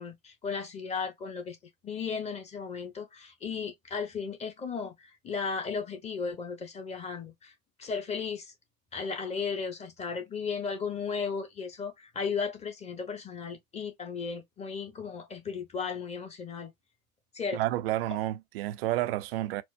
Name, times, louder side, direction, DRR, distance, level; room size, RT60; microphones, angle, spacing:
voice 1, 0.0-1.6 1.8-7.5 7.8-8.5 8.9-16.7 17.3-17.6, left 5 dB, 15° left, 0.8 m, -35 dB
voice 2, 17.5-19.6, right 15 dB, 45° right, 0.5 m, -30 dB
4.4 x 2.0 x 2.4 m
hypercardioid pair, 105°, 44 cm